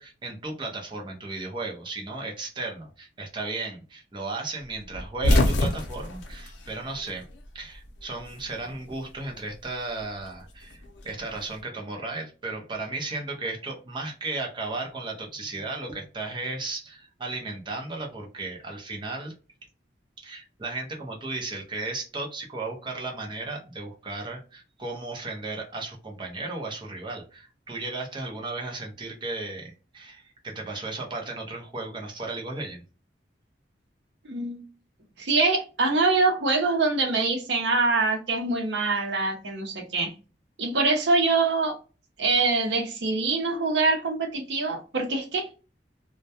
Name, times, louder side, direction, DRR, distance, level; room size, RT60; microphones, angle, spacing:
voice 1, 0.0-7.3 7.5-19.3 20.2-32.8, right 3 dB, 25° right, 0.6 m, -35 dB
sound 1, 4.9-7.5 7.7-8.8 10.0-11.5, left 1 dB, 85° left, 0.6 m, -26 dB
voice 2, 34.2-34.6 35.2-40.1 40.6-41.8 42.2-45.5, right 3 dB, 75° right, 0.7 m, -24 dB
2.2 x 2.1 x 2.7 m
head